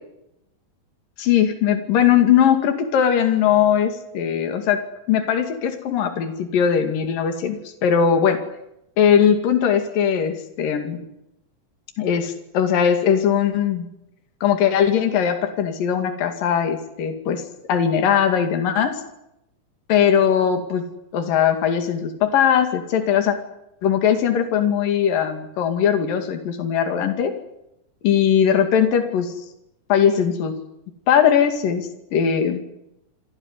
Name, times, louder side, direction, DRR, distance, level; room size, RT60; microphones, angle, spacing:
voice 1, 1.2-4.8 5.1-8.4 9.0-11.0 12.0-13.9 14.4-17.4 17.7-19.0 19.9-20.8 21.1-23.4 23.8-27.3 28.0-29.3 29.9-30.5 31.1-32.6, left 8 dB, 75° left, 6 dB, 4.0 m, -19 dB
27.0 x 17.0 x 9.8 m, 0.83 s
omnidirectional pair, 4.0 m